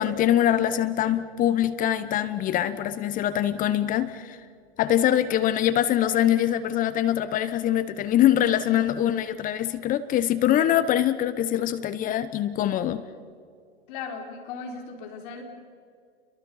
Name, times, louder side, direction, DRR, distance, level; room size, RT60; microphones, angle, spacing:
voice 1, 0.0-4.4 4.8-13.1, left 11 dB, 25° left, 13 dB, 0.9 m, -23 dB
voice 2, 13.9-15.4, left 5 dB, 50° left, 2 dB, 4.5 m, -37 dB
29.0 x 23.0 x 5.6 m, 2.2 s
hypercardioid pair, 110°, 33 cm